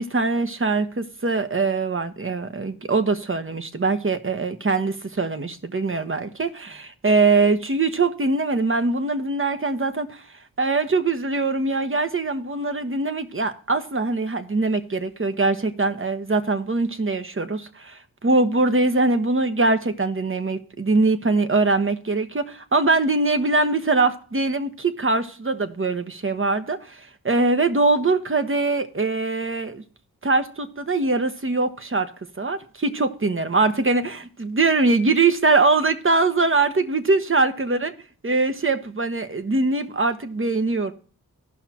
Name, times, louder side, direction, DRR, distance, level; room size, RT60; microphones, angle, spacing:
voice 1, 0.0-10.2 10.6-29.8 30.2-32.1 32.4-37.9 38.2-40.9, right 3 dB, 35° right, 1.1 m, -22 dB
16.0 x 5.8 x 2.9 m
cardioid pair, 50°, 36 cm